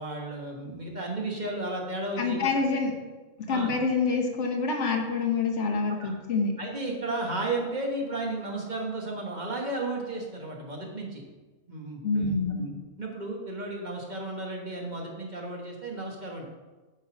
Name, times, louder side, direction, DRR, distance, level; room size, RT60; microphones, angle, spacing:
voice 1, 0.0-2.5 3.5-3.7 5.9-6.1 6.6-11.2 11.7-16.5, right 2 dB, 35° right, 0 dB, 1.3 m, -34 dB
voice 2, 2.2-2.9 3.5-6.5 12.0-12.6, left 4 dB, 60° left, 3 dB, 1.3 m, -26 dB
8.2 x 4.0 x 5.9 m, 1.2 s
omnidirectional pair, 1.4 m